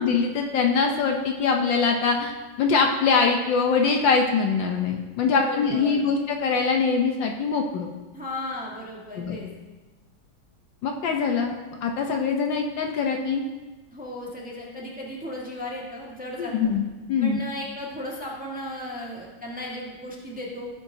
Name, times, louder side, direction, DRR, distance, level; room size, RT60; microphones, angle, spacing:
voice 1, 0.0-2.3 2.6-7.9 9.2-9.4 10.8-11.5 11.8-13.4 16.4-17.4, left 5 dB, 70° left, 2 dB, 1.4 m, -23 dB
voice 2, 5.2-6.0 8.1-9.5 13.9-16.7 17.2-20.7, left 1 dB, 5° right, -3 dB, 1.3 m, -35 dB
16.0 x 7.7 x 2.7 m, 1.2 s
omnidirectional pair, 2.3 m